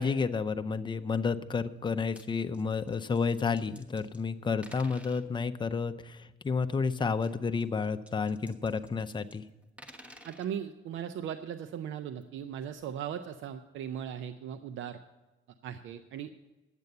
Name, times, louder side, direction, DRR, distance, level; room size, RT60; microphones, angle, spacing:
voice 1, 0.0-9.4, left 5 dB, 25° left, 8 dB, 0.6 m, -31 dB
sound 1, 1.9-2.3 2.5-4.3 4.6-5.2 7.1-9.4 9.6-10.5 12.2-12.3 12.8-12.9, equal, 5° right, 1.2 m, -53 dB
voice 2, 10.2-15.0 15.6-16.3, right 9 dB, 75° right, 10 dB, 0.6 m, -38 dB
10.5 x 8.3 x 6.7 m, 1.1 s
cardioid pair, 90°, 20 cm